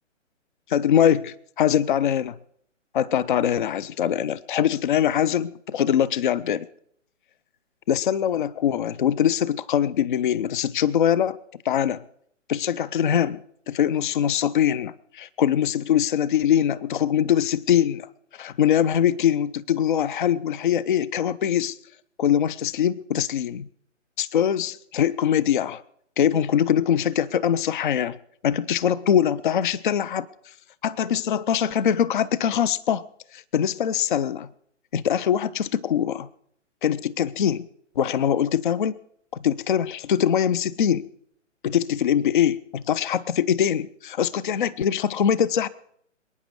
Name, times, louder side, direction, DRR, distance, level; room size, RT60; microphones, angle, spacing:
voice 1, 0.7-2.3 2.9-6.7 7.9-11.4 11.7-12.0 12.5-21.8 22.2-23.7 24.2-25.8 26.2-28.2 28.4-30.3 30.8-33.0 33.3-34.5 34.9-36.3 36.8-37.7 38.0-39.0 39.4-41.1 41.6-45.7, left 9 dB, 40° left, 0.5 m, -23 dB
26.5 x 9.4 x 4.6 m
figure-of-eight pair, 135°, 38 cm